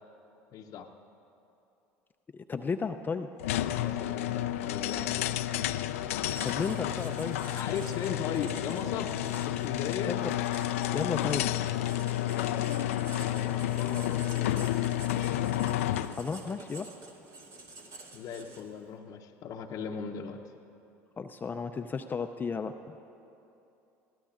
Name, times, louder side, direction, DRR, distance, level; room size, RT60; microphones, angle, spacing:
voice 1, 0.5-0.9 3.7-5.4 7.4-9.1 9.5-10.2 12.3-12.9 13.2-14.7 18.1-20.5, left 7 dB, 55° left, 1 dB, 0.7 m, -38 dB
voice 2, 2.3-3.3 6.4-7.4 10.1-10.3 10.9-11.5 16.1-16.9 21.2-23.0, left 5 dB, 25° left, 6 dB, 0.5 m, -34 dB
sound 1, 3.4-16.2, left 13 dB, 85° left, 0.4 m, -31 dB
Writing, 6.3-18.8, right 3 dB, 55° right, 2.3 m, -48 dB
22.5 x 16.5 x 2.5 m, 2.8 s
hypercardioid pair, 75°, 7 cm